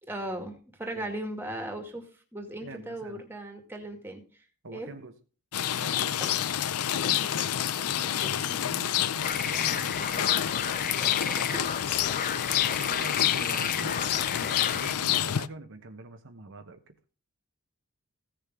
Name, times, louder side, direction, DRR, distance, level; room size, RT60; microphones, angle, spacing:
voice 1, 0.0-2.1 2.3-4.2 4.7-4.9 5.9-6.4 7.0-8.9 10.8-11.7 12.1-12.2, right 1 dB, 10° right, 2.3 m, -39 dB
voice 2, 2.6-3.2 4.6-5.1 5.8-6.5 8.3-10.4 12.8-16.8, right 3 dB, 60° right, 1.1 m, -45 dB
Rain, 5.5-15.5, left 10 dB, 80° left, 0.6 m, -28 dB
sound 1, 9.2-14.9, left 6 dB, 40° left, 0.9 m, -33 dB
16.0 x 6.8 x 3.7 m
head